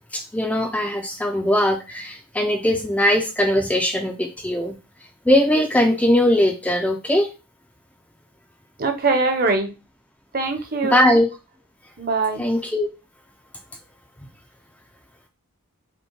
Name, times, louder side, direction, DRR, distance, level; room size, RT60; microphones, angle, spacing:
voice 1, 0.1-4.8 5.3-7.3 10.9-11.3 12.4-12.9, left 1 dB, 5° left, 4 dB, 0.3 m, -20 dB
voice 2, 8.8-9.7 10.3-11.1 12.0-12.4, right 3 dB, 40° right, 5 dB, 0.7 m, -22 dB
5.2 x 2.1 x 4.5 m, 0.30 s
head